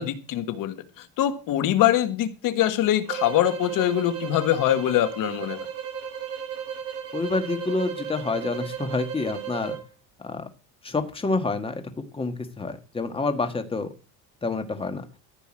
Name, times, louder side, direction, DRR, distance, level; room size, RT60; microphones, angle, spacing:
voice 1, 0.0-5.7, left 12 dB, 55° left, 11 dB, 1.7 m, -23 dB
sound 1, 3.0-9.9, right 8 dB, 40° right, 3.4 m, -35 dB
voice 2, 7.1-9.8 10.2-10.5 10.8-13.9 14.4-15.0, left 3 dB, 15° left, 7 dB, 1.8 m, -28 dB
14.5 x 5.4 x 7.6 m, 0.33 s
cardioid pair, 150°, 38 cm